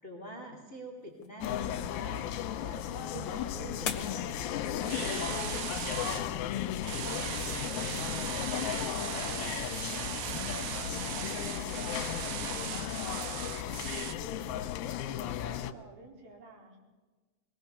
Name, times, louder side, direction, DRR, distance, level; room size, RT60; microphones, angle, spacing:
voice 1, 0.0-6.3, right 1 dB, 20° left, 1 dB, 2.6 m, -46 dB
sound 1, 1.0-6.0, left 6 dB, 45° left, 1.9 m, -45 dB
sound 2, 1.4-15.7, left 10 dB, 75° left, 2.6 m, -35 dB
sound 3, 4.9-6.2 6.8-14.2, right 12 dB, 90° right, 3.1 m, -38 dB
voice 2, 6.6-16.8, right 3 dB, 60° right, 0 dB, 5.9 m, -54 dB
23.0 x 19.0 x 6.9 m, 1.3 s
omnidirectional pair, 4.9 m